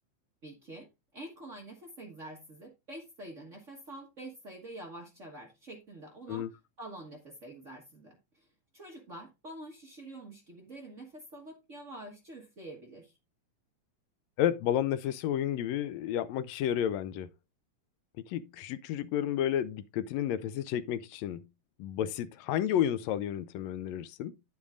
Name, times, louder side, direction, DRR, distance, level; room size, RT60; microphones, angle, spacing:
voice 1, 0.4-8.5 8.7-13.1, right 1 dB, 45° right, 1.0 m, -47 dB
voice 2, 14.4-17.3 18.3-21.4 21.8-24.3, left 10 dB, 80° left, 1.6 m, -31 dB
9.6 x 8.7 x 2.5 m
omnidirectional pair, 3.6 m